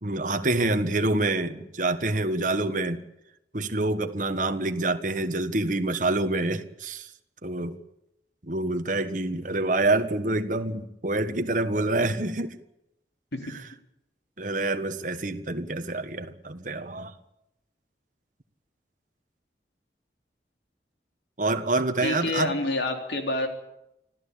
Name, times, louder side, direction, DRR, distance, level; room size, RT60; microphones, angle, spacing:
voice 1, 0.0-3.0 3.5-7.1 7.4-7.8 8.4-12.6 14.4-17.1 21.4-22.5, right 2 dB, 45° right, 1.5 m, -27 dB
voice 2, 22.0-23.5, left 2 dB, 75° left, 3.6 m, -27 dB
25.5 x 15.0 x 8.5 m
head